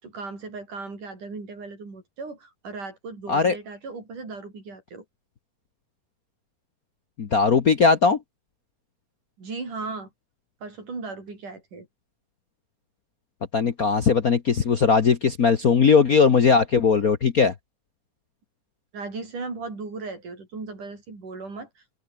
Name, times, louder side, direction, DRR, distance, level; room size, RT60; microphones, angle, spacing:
voice 1, 0.0-5.0 9.4-10.1 10.6-11.9 18.9-22.0, right 3 dB, 75° right, 9.0 m, -37 dB
voice 2, 7.2-8.2 13.5-17.5, left 5 dB, 80° left, 0.8 m, -19 dB
omnidirectional pair, 3.6 m